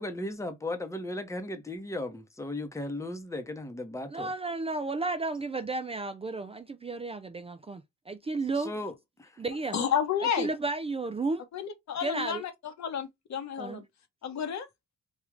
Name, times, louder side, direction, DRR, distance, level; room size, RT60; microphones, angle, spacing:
voice 1, 0.0-4.3 8.6-8.9 9.2-9.3, left 1 dB, 10° left, 0.9 m, -36 dB
voice 2, 4.1-8.7 9.4-9.8 10.2-11.4 12.0-12.4 13.6-13.8, right 3 dB, 20° right, 0.4 m, -33 dB
voice 3, 9.7-10.5 11.5-12.5 12.8-13.8 14.2-14.7, left 8 dB, 65° left, 1.0 m, -31 dB
3.6 x 2.4 x 3.1 m
cardioid pair, 90°, 30 cm